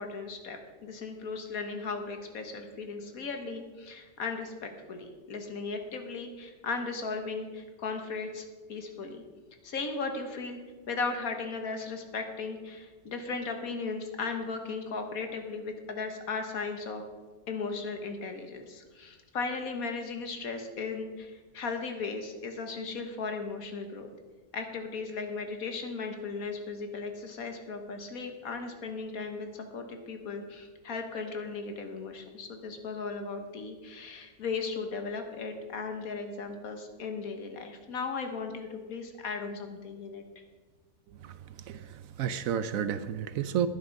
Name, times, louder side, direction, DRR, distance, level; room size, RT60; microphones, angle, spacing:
voice 1, 0.0-9.2 9.6-10.6 10.9-17.0 17.5-24.1 24.5-40.2, left 4 dB, 65° left, 5 dB, 1.6 m, -36 dB
voice 2, 41.2-43.7, right 9 dB, 70° right, 13 dB, 0.9 m, -32 dB
11.5 x 9.8 x 5.2 m, 1.4 s
omnidirectional pair, 1.6 m